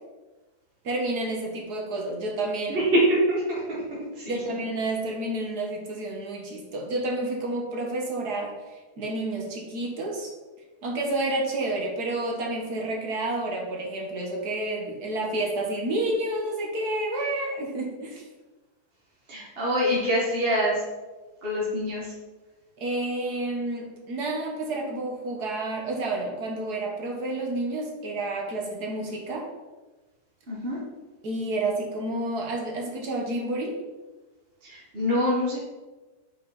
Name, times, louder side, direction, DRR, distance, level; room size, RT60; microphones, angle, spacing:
voice 1, 0.8-2.8 4.3-10.3 10.8-18.2 22.8-29.5 31.2-33.7, right 2 dB, 80° right, -1 dB, 1.9 m, -30 dB
voice 2, 2.7-4.3 19.3-20.8 21.4-22.1 30.5-30.8 34.6-35.6, equal, 40° right, -6 dB, 1.7 m, -25 dB
7.8 x 5.5 x 4.0 m, 1.2 s
omnidirectional pair, 1.7 m